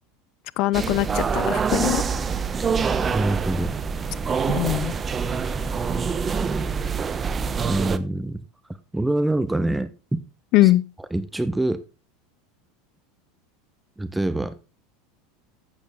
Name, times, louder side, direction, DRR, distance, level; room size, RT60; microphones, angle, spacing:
voice 1, 0.6-2.0 4.5-4.9 10.5-10.8, left 16 dB, 55° left, 0.6 m, -21 dB
sound 1, 0.7-8.0, right 5 dB, 25° right, 1.1 m, -25 dB
voice 2, 3.1-3.8 7.6-8.4 8.9-10.2 10.6-10.7 11.1-11.8 14.0-14.5, right 1 dB, 5° right, 1.0 m, -25 dB
12.5 x 8.5 x 3.9 m
hypercardioid pair, 90°, 0 cm